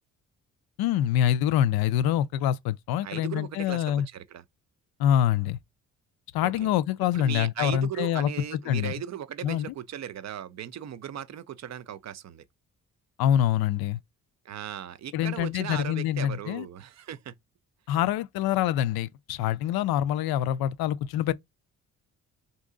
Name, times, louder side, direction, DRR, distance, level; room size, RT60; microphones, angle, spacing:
voice 1, 0.8-4.1 5.0-5.6 6.3-8.9 9.4-9.7 13.2-14.0 15.1-16.7 17.9-21.3, left 11 dB, 60° left, 0.5 m, -25 dB
voice 2, 3.0-4.4 6.4-6.7 7.1-12.4 14.5-17.3, right 10 dB, 40° right, 0.5 m, -37 dB
2.8 x 2.6 x 3.6 m
hypercardioid pair, 45°, 42 cm